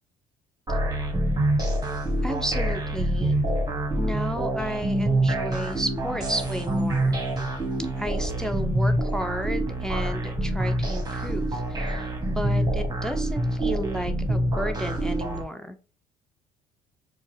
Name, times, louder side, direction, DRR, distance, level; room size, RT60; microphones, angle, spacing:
sound 1, 0.7-15.4, right 1 dB, 20° right, 1.1 m, -26 dB
voice 1, 2.2-3.3 4.0-7.2 8.0-15.8, equal, 5° left, 6 dB, 0.5 m, -32 dB
4.4 x 2.2 x 2.7 m, 0.36 s
hypercardioid pair, 55°, 21 cm